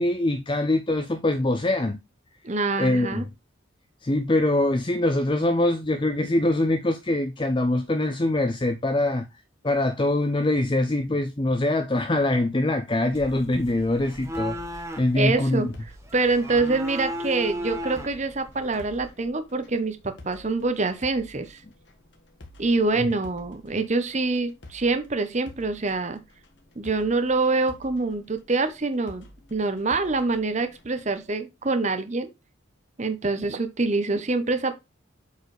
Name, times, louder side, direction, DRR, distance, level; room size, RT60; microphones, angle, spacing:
voice 1, 0.0-2.0 2.8-3.2 4.0-9.2 9.6-15.7 23.0-23.1, left 1 dB, 25° left, 0.5 m, -23 dB
voice 2, 2.4-3.2 15.1-15.7 16.1-21.6 22.6-26.2 26.8-29.2 29.5-32.3 33.0-34.8, right 3 dB, 35° right, 0.8 m, -25 dB
sound 1, 13.1-19.1, equal, 15° right, 1.1 m, -36 dB
sound 2, 13.5-31.3, left 1 dB, 60° left, 1.6 m, -50 dB
8.1 x 4.7 x 3.2 m
head